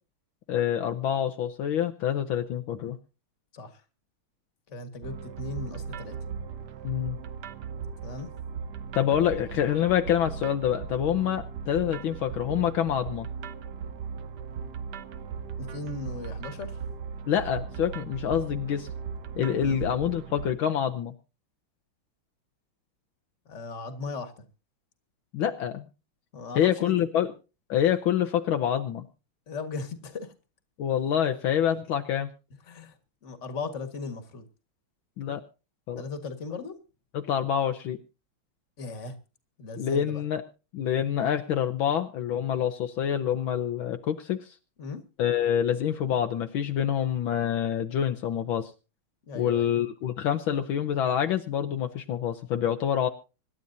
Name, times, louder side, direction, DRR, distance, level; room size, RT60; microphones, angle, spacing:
voice 1, 0.5-3.0 6.8-7.2 8.9-13.3 17.3-18.9 19.4-21.1 25.3-25.8 26.5-27.3 27.7-29.0 30.8-32.3 35.2-35.4 35.9-36.0 37.1-38.0 39.8-40.4 40.7-44.5 45.2-48.7 49.4-53.1, left 9 dB, 70° left, 6 dB, 1.6 m, -26 dB
voice 2, 4.7-6.2 8.0-8.3 15.6-16.8 19.6-19.8 23.5-24.4 26.3-27.1 29.5-30.3 32.7-33.0 33.2-34.5 36.0-36.8 38.8-39.2 39.6-40.2 44.8-45.0 49.3-49.7, left 4 dB, 35° left, 8 dB, 1.8 m, -37 dB
sound 1, 5.0-20.5, right 6 dB, 60° right, 1.3 m, -38 dB
25.5 x 11.0 x 2.7 m, 0.32 s
omnidirectional pair, 2.3 m